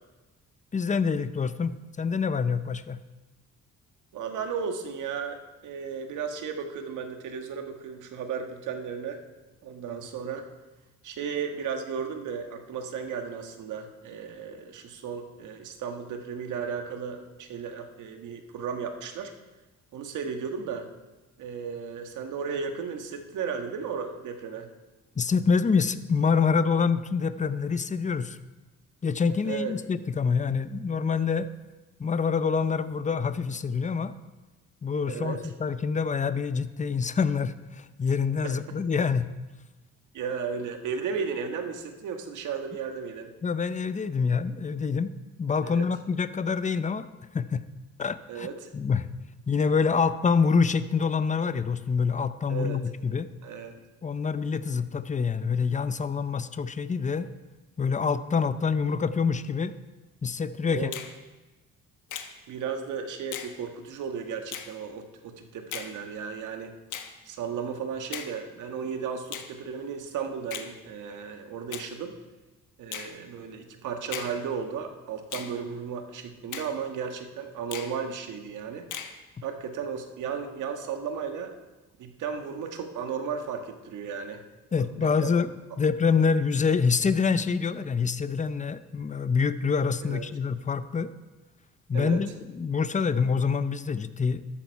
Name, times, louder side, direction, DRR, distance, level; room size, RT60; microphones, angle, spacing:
voice 1, 0.7-3.0 25.2-28.4 29.0-31.5 32.0-34.1 34.8-39.3 43.4-45.1 45.4-47.1 47.3-47.6 48.0-48.5 48.7-49.1 49.5-53.3 54.0-57.3 57.8-59.7 60.2-60.9 84.7-91.1 91.9-92.3 92.5-94.4, left 5 dB, 25° left, 13 dB, 0.7 m, -26 dB
voice 2, 4.1-9.2 9.6-10.4 11.0-19.3 19.9-20.9 21.4-24.7 29.4-29.8 35.1-35.4 38.4-38.5 40.1-43.3 45.6-45.9 48.3-48.7 52.5-52.8 53.4-53.8 60.7-60.9 62.5-66.7 67.2-72.1 72.8-78.9 79.4-81.5 82.0-84.4 84.7-85.3 90.0-90.2 91.9-92.2, right 6 dB, 80° right, 5 dB, 1.6 m, -34 dB
Finger snapping, 60.9-61.1 62.1-62.3 63.3-63.5 64.5-64.7 65.7-65.9 66.9-67.1 68.1-68.3 69.3-69.5 70.5-70.7 71.7-71.9 72.9-73.1 74.1-74.3 75.3-75.5 76.5-76.7 77.7-77.9 78.9-79.1, left 9 dB, 80° left, 1.4 m, -37 dB
13.5 x 12.0 x 4.7 m, 1.2 s
cardioid pair, 90°, 30 cm